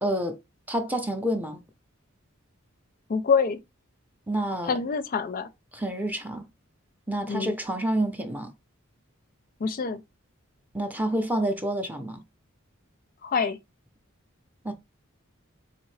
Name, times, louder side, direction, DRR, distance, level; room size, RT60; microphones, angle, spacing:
voice 1, 0.0-0.4 0.7-1.6 4.3-4.7 5.7-6.5 7.1-8.5 10.7-12.2 14.6-14.7, right 1 dB, 10° right, 0.5 m, -28 dB
voice 2, 3.1-3.6 4.6-5.5 7.3-7.6 9.6-10.0 13.2-13.6, left 5 dB, 45° left, 0.4 m, -26 dB
3.6 x 3.3 x 3.2 m
head